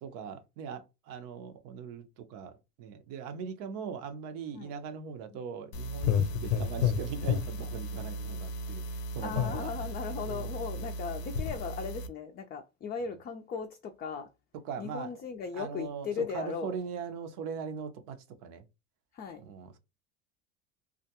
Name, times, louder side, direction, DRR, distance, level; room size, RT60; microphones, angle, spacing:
voice 1, 0.0-9.7 10.2-10.9 14.6-15.1 15.5-18.6 19.4-19.8, right 6 dB, 70° right, 0.7 m, -40 dB
sound 1, 5.7-12.1, left 5 dB, 80° left, 0.6 m, -32 dB
voice 2, 9.2-14.3 14.8-16.8 19.1-19.4, left 6 dB, 30° left, 0.4 m, -37 dB
2.3 x 2.2 x 2.8 m
supercardioid pair, 100°, 33 cm